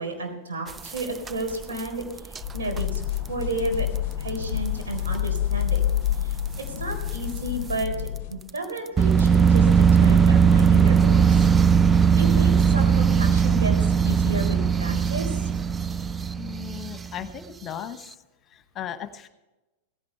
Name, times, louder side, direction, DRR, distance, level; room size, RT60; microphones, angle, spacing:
voice 1, 0.0-3.9 4.2-5.9 6.2-11.5 12.2-15.5, right 2 dB, 65° right, 3 dB, 4.2 m, -32 dB
sound 1, 0.7-1.8 2.2-2.4 2.8-3.0 3.3-3.4 3.6-3.7 4.3-4.4 5.2-5.3 5.7-5.8 7.1-7.2 7.8-7.9 9.0-17.3, right 6 dB, 15° right, 0.3 m, -19 dB
sound 2, 2.4-8.4, left 11 dB, 50° left, 0.5 m, -28 dB
voice 2, 16.3-18.1 18.5-19.3, left 9 dB, 30° left, 11 dB, 1.0 m, -37 dB
17.0 x 16.0 x 3.5 m, 1.0 s
figure-of-eight pair, 90°, 0 cm